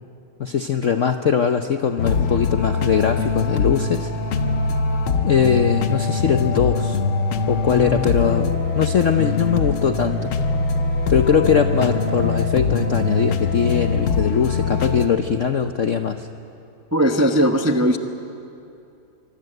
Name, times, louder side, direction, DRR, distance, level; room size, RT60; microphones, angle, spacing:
voice 1, 0.4-4.1 5.2-7.0 7.5-10.3 11.1-16.3, left 7 dB, 60° left, 6 dB, 0.8 m, -21 dB
sound 1, 2.0-15.1, left 4 dB, 85° left, 2.0 m, -22 dB
voice 2, 16.9-18.0, equal, 15° right, 5 dB, 0.5 m, -18 dB
24.5 x 24.5 x 7.9 m, 2.6 s
omnidirectional pair, 2.3 m